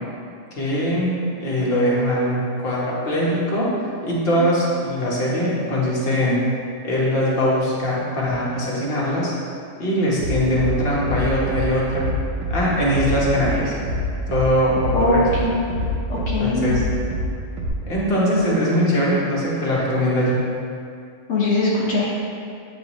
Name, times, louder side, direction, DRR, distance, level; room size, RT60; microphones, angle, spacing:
voice 1, 0.5-3.7 4.0-6.4 6.8-9.3 9.8-12.1 12.5-13.7 14.3-15.3 16.4-16.8 17.9-20.4, equal, 50° left, -6 dB, 1.3 m, -21 dB
Bass drum, 10.2-10.7 11.0-11.6 11.9-12.6 12.9-13.5 13.8-14.4 14.8-15.4 15.7-16.3 16.6-17.2 17.6-17.7, left 1 dB, 80° right, 1.3 m, -26 dB
voice 2, 14.9-15.5 16.1-16.7 21.3-22.1, left 1 dB, 75° left, -7 dB, 1.3 m, -21 dB
8.3 x 3.9 x 3.0 m, 2.4 s
omnidirectional pair, 1.3 m